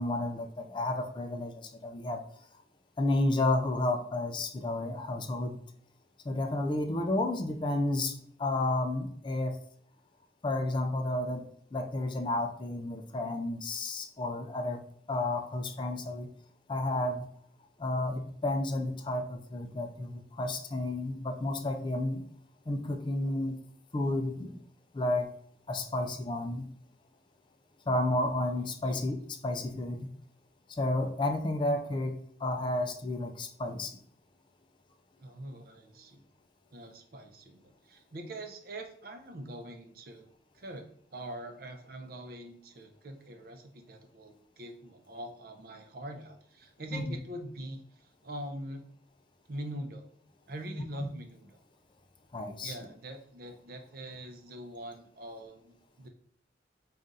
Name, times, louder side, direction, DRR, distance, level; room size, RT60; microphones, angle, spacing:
voice 1, 0.0-2.2 3.0-5.6 6.3-9.6 10.4-11.4 11.7-16.3 16.7-17.3 17.8-22.2 22.7-23.6 23.9-24.6 24.9-25.3 25.7-26.7 27.9-30.1 30.7-34.0 46.9-47.0 52.3-52.7, left 2 dB, 25° left, 5 dB, 0.3 m, -31 dB
voice 2, 35.2-36.2 36.7-40.2 40.5-48.8 49.5-50.0 50.5-51.6 52.6-56.1, right 1 dB, 50° right, 5 dB, 0.6 m, -43 dB
3.7 x 2.4 x 3.9 m, 0.63 s
head